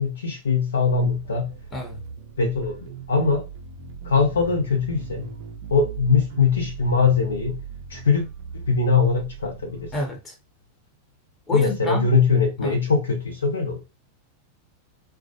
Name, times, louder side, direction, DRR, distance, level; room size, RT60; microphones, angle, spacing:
voice 1, 0.0-1.5 2.4-3.5 4.0-5.3 5.7-7.6 7.9-8.3 8.7-9.9 11.5-13.8, left 5 dB, 70° left, 0.8 m, -21 dB
sound 1, 0.9-10.0, right 7 dB, 50° right, 0.5 m, -39 dB
voice 2, 9.9-10.3 11.5-12.1 12.6-12.8, left 1 dB, 20° left, 0.9 m, -29 dB
2.2 x 2.2 x 2.8 m
figure-of-eight pair, 90°, 0 cm